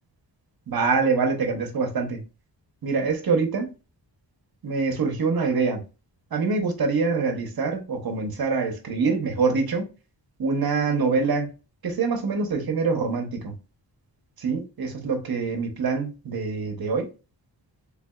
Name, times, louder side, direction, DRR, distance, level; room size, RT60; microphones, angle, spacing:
voice 1, 0.7-2.2 2.8-3.7 4.6-5.8 6.3-9.8 10.4-11.5 11.8-13.5 14.4-17.1, right 4 dB, 55° right, 0.9 m, -25 dB
3.5 x 3.3 x 2.3 m
wide cardioid pair, 135°, 43 cm